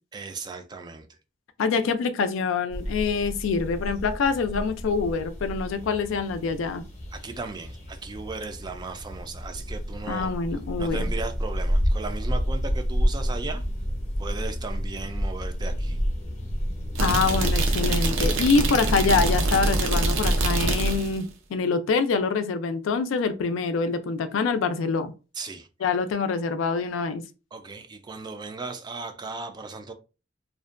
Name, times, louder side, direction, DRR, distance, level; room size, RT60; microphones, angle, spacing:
voice 1, 0.1-1.1 7.1-10.3 10.8-13.6 14.2-16.0 25.3-25.7 27.5-29.9, right 4 dB, 20° right, 0.3 m, -36 dB
voice 2, 1.6-6.8 10.1-11.1 17.0-25.1 25.8-27.2, left 4 dB, 85° left, 0.4 m, -25 dB
sound 1, 2.7-17.7, equal, 35° left, 0.6 m, -30 dB
sound 2, 17.0-21.2, right 2 dB, 85° right, 0.5 m, -24 dB
2.5 x 2.2 x 2.4 m
head